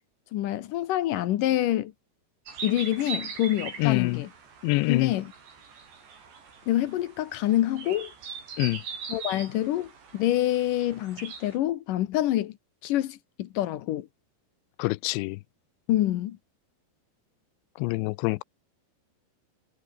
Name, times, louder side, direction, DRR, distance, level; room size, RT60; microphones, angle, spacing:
voice 1, 0.3-1.9 2.6-4.3 4.9-5.3 6.7-8.1 9.1-12.6 12.8-14.1 15.9-16.4, left 13 dB, 70° left, 2.1 m, -26 dB
sound 1, 2.5-11.6, right 5 dB, 70° right, 8.0 m, -41 dB
voice 2, 3.8-4.2 4.6-5.1 8.6-8.8 14.8-15.4 17.8-18.4, left 23 dB, 90° left, 2.9 m, -25 dB
omnidirectional pair, 5.1 m